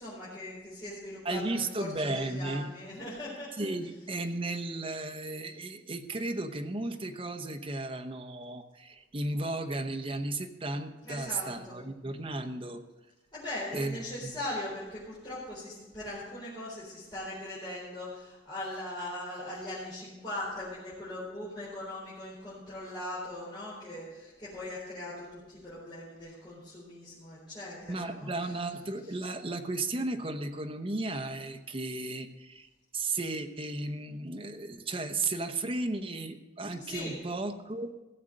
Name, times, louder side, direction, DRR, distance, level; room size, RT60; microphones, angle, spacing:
voice 1, 0.0-3.7 11.0-11.7 13.3-28.5 29.0-29.2 36.8-37.2, left 1 dB, 25° left, -9 dB, 4.1 m, -40 dB
voice 2, 1.2-2.7 3.6-12.8 13.7-14.3 27.9-32.7 32.9-37.9, right 2 dB, 30° right, 7 dB, 0.9 m, -34 dB
15.0 x 7.3 x 6.5 m, 1.1 s
head